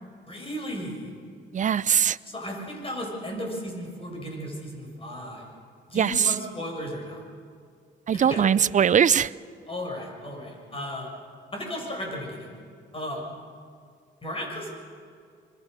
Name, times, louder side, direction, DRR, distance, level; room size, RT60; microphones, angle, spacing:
voice 1, 0.3-1.1 2.3-5.5 5.9-7.2 8.1-8.4 9.7-11.1 11.5-12.6 12.9-13.2 14.2-14.8, equal, 30° left, 1 dB, 7.2 m, -35 dB
voice 2, 1.5-2.2 5.9-6.3 8.1-9.3, right 8 dB, 40° right, 18 dB, 0.6 m, -21 dB
26.5 x 22.0 x 6.8 m, 2.2 s
cardioid pair, 90°, 20 cm